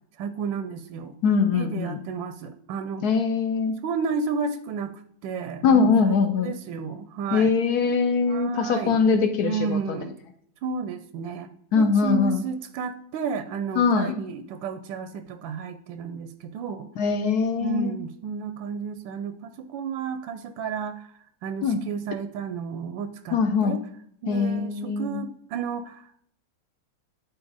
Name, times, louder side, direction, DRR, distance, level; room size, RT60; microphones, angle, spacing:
voice 1, 0.2-1.2 1.5-3.1 3.8-7.5 8.3-9.1 9.4-10.2 10.6-11.5 11.7-16.9 17.6-23.8 24.2-26.2, right 5 dB, 90° right, 11 dB, 1.3 m, -32 dB
voice 2, 1.2-2.0 3.0-3.8 5.6-6.5 7.3-10.0 11.7-12.4 13.8-14.2 17.0-18.0 21.6-21.8 23.3-23.8 24.3-25.2, left 5 dB, 65° left, 8 dB, 1.1 m, -22 dB
11.5 x 4.2 x 3.9 m, 0.69 s
omnidirectional pair, 2.0 m